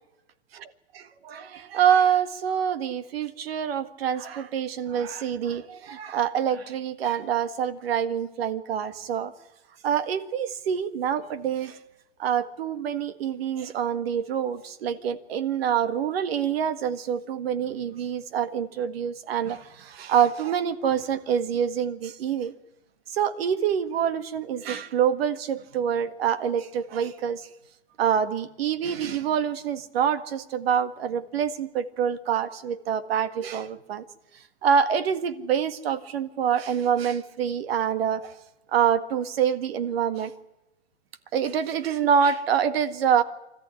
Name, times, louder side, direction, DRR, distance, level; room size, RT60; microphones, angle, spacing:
voice 1, 0.9-9.3 9.8-11.8 12.2-22.5 23.1-27.4 28.0-34.0 34.6-38.4 38.7-40.3 41.3-43.2, right 8 dB, 60° right, 12 dB, 1.8 m, -26 dB
24.5 x 14.5 x 9.9 m, 0.98 s
hypercardioid pair, 160°, 34 cm